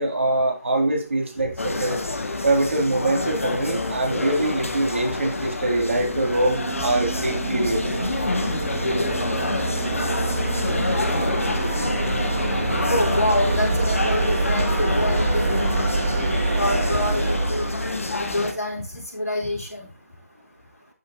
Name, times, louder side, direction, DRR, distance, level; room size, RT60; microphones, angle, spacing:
voice 1, 0.0-2.0 2.4-7.8, right 2 dB, 55° right, 3.4 m, -23 dB
sound 1, 1.6-18.5, left 2 dB, 60° left, 1.5 m, -28 dB
sound 2, 5.5-18.4, right 2 dB, 35° right, 3.4 m, -26 dB
voice 2, 11.8-12.2 12.9-15.9 16.1-17.7 18.2-19.9, left 1 dB, 75° left, 4.1 m, -27 dB
12.5 x 5.3 x 3.0 m
figure-of-eight pair, 160°, 8 cm